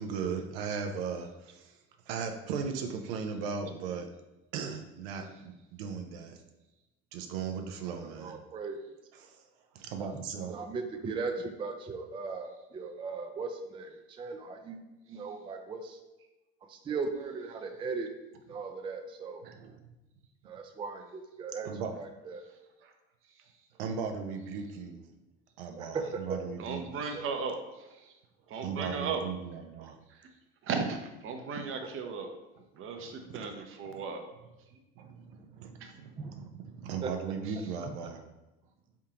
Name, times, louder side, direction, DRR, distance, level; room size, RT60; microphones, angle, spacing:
voice 1, 0.0-1.7 2.1-4.2 4.5-6.4 7.1-8.4 9.2-9.4 9.7-10.6 19.4-19.8 21.6-22.0 23.8-25.1 25.6-26.8 28.6-30.0 35.0-38.2, right 6 dB, 80° right, 5 dB, 0.5 m, -37 dB
voice 2, 7.9-8.8 10.0-10.1 10.5-14.8 15.1-16.0 16.7-18.1 18.5-19.4 20.4-21.7 22.0-22.4 25.8-26.4 36.2-36.3 37.0-37.1 37.8-37.9, right 4 dB, 20° right, 6 dB, 0.4 m, -38 dB
voice 3, 26.6-28.2 28.5-29.2 30.1-30.3 30.6-32.3 32.7-34.2 34.7-34.8 35.8-35.9 37.4-37.8, right 5 dB, 45° right, 5 dB, 0.7 m, -37 dB
3.7 x 3.5 x 2.8 m, 1.0 s
supercardioid pair, 85°, 29 cm